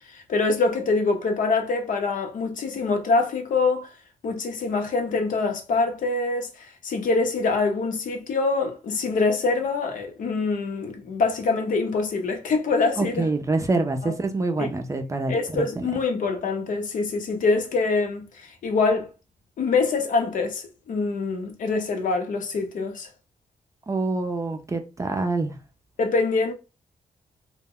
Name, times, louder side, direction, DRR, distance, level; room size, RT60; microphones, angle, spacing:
voice 1, 0.1-3.9 4.2-13.3 14.0-14.1 14.6-14.7 15.3-19.1 19.6-23.1 26.0-26.5, left 3 dB, 70° left, 0.7 m, -24 dB
voice 2, 13.0-15.9 23.9-25.5, right 3 dB, 20° right, 0.4 m, -26 dB
2.1 x 2.1 x 3.6 m
cardioid pair, 95°, 14 cm